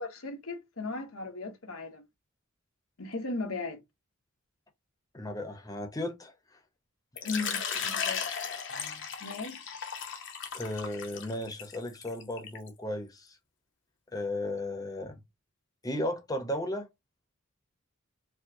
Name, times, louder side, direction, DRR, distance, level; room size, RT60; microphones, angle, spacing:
voice 1, 0.0-2.0 3.0-3.8 7.2-8.2 9.2-9.8, left 3 dB, 85° left, 1.1 m, -37 dB
voice 2, 5.1-6.3 8.7-9.0 10.5-13.4 14.1-15.2 15.8-16.9, left 1 dB, 15° left, 0.8 m, -35 dB
Water / Liquid, 7.2-12.7, left 7 dB, 60° left, 0.8 m, -36 dB
4.5 x 2.1 x 2.7 m
head